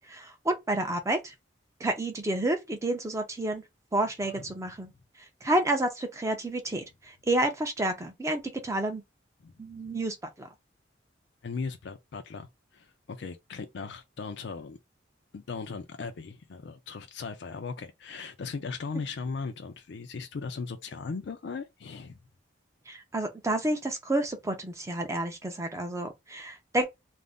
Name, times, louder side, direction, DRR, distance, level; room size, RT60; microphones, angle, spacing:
voice 1, 0.1-1.3 1.8-3.6 3.9-4.9 5.4-9.0 9.6-10.5 22.9-26.9, right 1 dB, 15° right, 0.5 m, -30 dB
voice 2, 11.4-12.5 12.7-14.8 15.3-22.2, left 4 dB, 65° left, 0.4 m, -38 dB
2.5 x 2.0 x 3.4 m
head